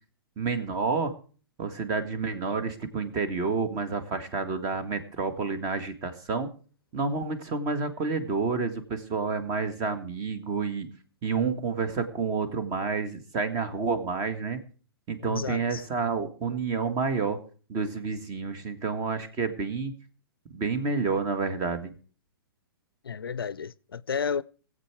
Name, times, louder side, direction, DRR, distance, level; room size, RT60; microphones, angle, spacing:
voice 1, 0.4-1.1 1.6-6.5 6.9-10.9 11.2-14.6 15.1-17.4 17.7-19.9 20.5-21.9, right 4 dB, 30° right, 2.0 m, -29 dB
voice 2, 15.2-15.9 23.0-24.4, left 6 dB, 75° left, 0.5 m, -32 dB
22.0 x 8.1 x 4.7 m
figure-of-eight pair, 115°, 12 cm